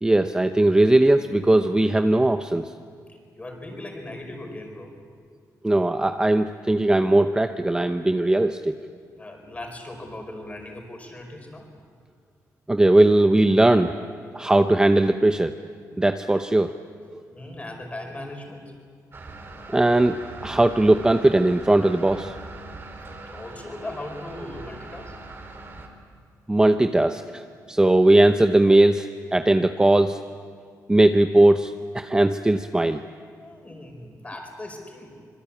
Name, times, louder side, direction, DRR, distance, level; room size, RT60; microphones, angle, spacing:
voice 1, 0.0-2.7 5.6-8.7 12.7-13.9 14.3-15.5 16.0-16.7 19.7-20.2 20.4-22.3 26.5-30.2 30.9-33.0, right 1 dB, 10° right, 8 dB, 0.7 m, -19 dB
voice 2, 3.1-4.9 9.2-11.7 17.3-18.7 23.3-25.1 33.4-35.1, left 1 dB, 20° left, 3 dB, 4.9 m, -38 dB
sound 1, 19.1-25.9, right 3 dB, 35° right, 3.6 m, -41 dB
25.5 x 22.0 x 8.6 m, 2.1 s
cardioid pair, 115°, 7 cm